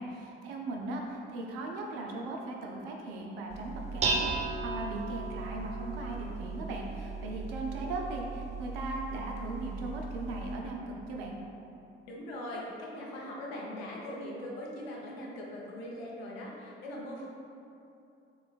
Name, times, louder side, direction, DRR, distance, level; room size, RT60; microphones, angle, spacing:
voice 1, 0.0-11.4, right 2 dB, 70° right, 0 dB, 0.6 m, -38 dB
Dishes pots and pans, 3.5-10.6, right 3 dB, 25° right, 0.4 m, -36 dB
voice 2, 12.1-17.3, left 1 dB, 70° left, -3 dB, 0.7 m, -41 dB
6.5 x 2.4 x 2.4 m, 2.7 s
figure-of-eight pair, 45°, 30 cm